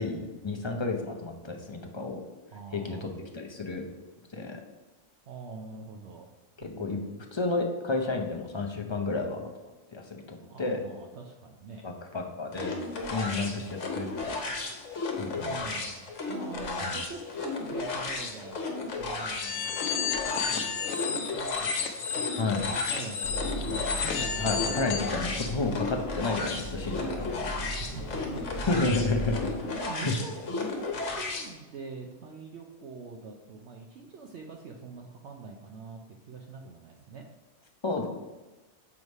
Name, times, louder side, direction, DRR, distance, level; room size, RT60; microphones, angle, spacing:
voice 1, 0.0-2.2 2.7-3.8 4.3-4.6 6.6-7.0 7.3-9.5 9.9-10.8 11.8-12.7 13.1-14.8 15.2-15.6 16.8-16.9 22.4-22.7 24.0-27.5 28.7-29.5 30.1-30.2 37.8-38.1, left 3 dB, 30° left, 2 dB, 0.5 m, -31 dB
voice 2, 2.5-3.2 5.3-6.3 6.6-7.2 10.4-11.9 15.4-24.4 27.6-28.4 29.6-37.2, right 4 dB, 65° right, 2 dB, 0.8 m, -44 dB
sound 1, 12.5-31.5, left 3 dB, 65° left, 1.3 m, -34 dB
sound 2, 19.4-25.2, left 7 dB, 90° left, 1.1 m, -32 dB
sound 3, 23.2-29.6, right 1 dB, 50° left, 1.6 m, -38 dB
7.1 x 3.2 x 5.3 m, 1.1 s
omnidirectional pair, 1.4 m